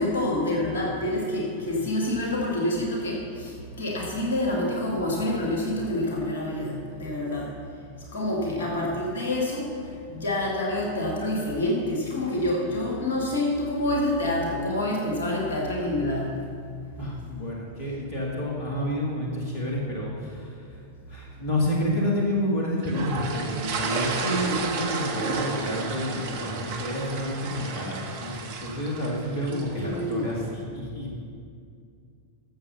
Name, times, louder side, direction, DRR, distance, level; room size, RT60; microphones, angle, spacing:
voice 1, 0.0-7.5 8.1-9.7 10.1-16.3 29.5-30.3, left 1 dB, 65° left, -2 dB, 2.3 m, -27 dB
voice 2, 17.0-31.1, left 1 dB, 45° left, -2 dB, 2.2 m, -29 dB
sound 1, 22.8-30.1, right 4 dB, 55° right, 1.3 m, -32 dB
13.5 x 7.3 x 5.5 m, 2.3 s
figure-of-eight pair, 90°, 0 cm